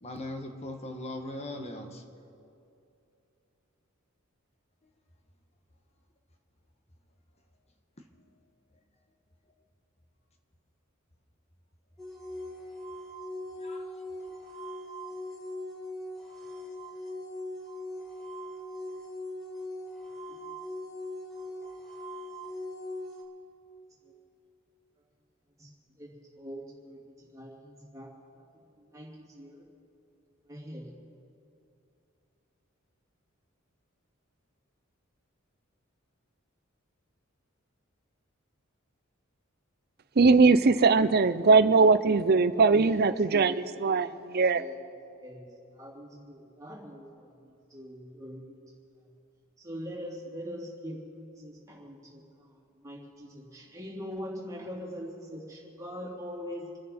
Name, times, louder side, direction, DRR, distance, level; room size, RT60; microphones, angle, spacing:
voice 1, 0.0-2.0 13.6-14.3, left 1 dB, 30° left, 5 dB, 1.3 m, -40 dB
sound 1, 12.0-23.2, left 1 dB, ahead, 2.3 m, -40 dB
voice 2, 25.6-29.7 30.4-31.0 42.7-43.0 43.3-43.6 44.6-44.8 45.1-48.8 49.0-49.1 49.6-56.8, equal, 15° right, -3 dB, 2.9 m, -43 dB
voice 3, 40.2-43.5 43.8-44.6, right 4 dB, 50° right, 13 dB, 0.6 m, -21 dB
29.0 x 10.0 x 4.3 m, 2.7 s
head